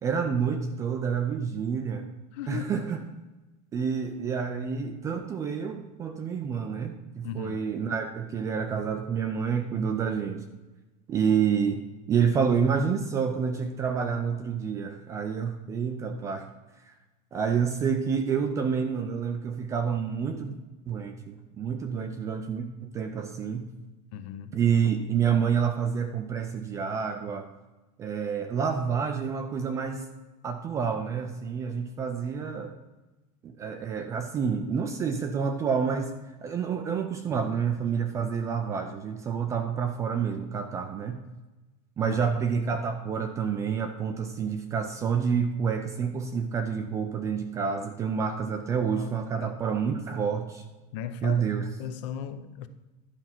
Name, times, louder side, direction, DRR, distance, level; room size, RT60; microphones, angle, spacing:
voice 1, 0.0-2.0 2.5-3.0 3.7-10.5 11.1-11.8 12.1-16.5 16.9-17.0 17.3-20.5 20.9-23.7 24.5-27.5 28.0-30.1 30.4-32.7 33.4-36.2 36.4-41.2 42.0-50.6 51.2-51.7, right 6 dB, 15° right, 0.3 m, -28 dB
voice 2, 2.3-2.8 7.2-7.6 24.1-24.6 42.0-42.2 48.7-49.1 49.4-49.5 50.9-51.5 51.8-52.7, left 9 dB, 45° left, 0.7 m, -37 dB
11.5 x 5.4 x 5.9 m
supercardioid pair, 175°, 21 cm